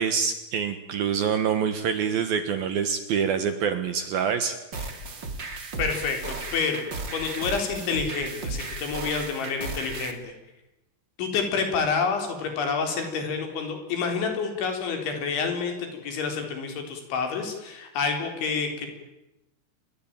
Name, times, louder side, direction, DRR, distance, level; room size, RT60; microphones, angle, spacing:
voice 1, 0.0-4.6, right 7 dB, 65° right, 10 dB, 2.6 m, -26 dB
sound 1, 4.7-10.1, right 3 dB, 30° right, 2.4 m, -35 dB
voice 2, 5.8-6.9 7.1-10.3 11.2-18.9, left 5 dB, 70° left, 5 dB, 6.5 m, -28 dB
28.5 x 22.0 x 9.1 m, 0.95 s
omnidirectional pair, 5.6 m